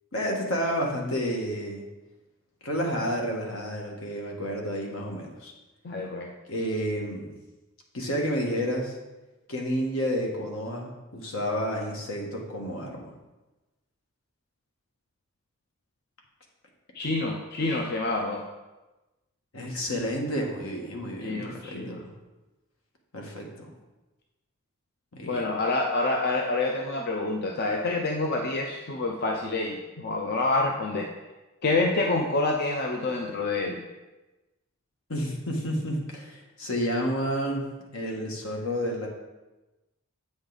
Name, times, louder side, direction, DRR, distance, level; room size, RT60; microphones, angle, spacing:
voice 1, 0.1-1.8 2.6-5.5 6.5-7.3 7.9-9.0 9.5-13.0 19.5-22.1 23.1-23.7 25.1-25.5 35.1-37.6 37.9-39.1, equal, 75° left, 0 dB, 1.3 m, -30 dB
voice 2, 5.8-6.3 16.9-18.4 21.2-22.0 25.2-31.1 31.6-33.8, left 2 dB, 50° left, 1 dB, 0.6 m, -27 dB
8.1 x 5.2 x 3.9 m, 1.1 s
head